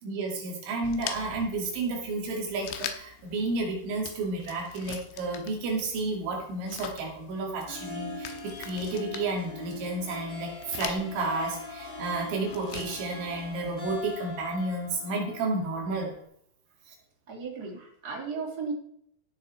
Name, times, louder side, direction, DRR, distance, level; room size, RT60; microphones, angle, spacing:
voice 1, 0.0-16.1 16.9-17.0, right 3 dB, 90° right, 0 dB, 5.0 m, -31 dB
sound 1, 0.8-14.2, left 9 dB, 85° left, 3.3 m, -44 dB
Harp, 7.5-16.2, left 2 dB, 10° left, 2.1 m, -42 dB
Wind instrument woodwind instrument, 10.0-14.6, left 5 dB, 60° left, 4.4 m, -49 dB
voice 2, 17.3-18.7, right 5 dB, 25° right, 0 dB, 2.6 m, -35 dB
16.5 x 6.9 x 4.4 m, 0.68 s
omnidirectional pair, 5.2 m